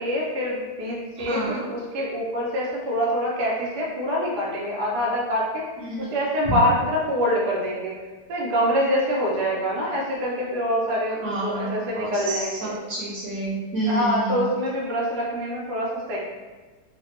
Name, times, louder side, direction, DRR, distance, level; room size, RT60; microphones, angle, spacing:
voice 1, 0.0-5.6 6.0-7.9 8.3-12.8 13.8-16.2, equal, 90° right, -3 dB, 1.3 m, -25 dB
voice 2, 1.2-1.6 5.9-6.1 6.5-6.6 11.2-14.4, right 2 dB, 65° right, -7 dB, 1.2 m, -29 dB
3.2 x 2.2 x 3.1 m, 1.3 s
omnidirectional pair, 1.7 m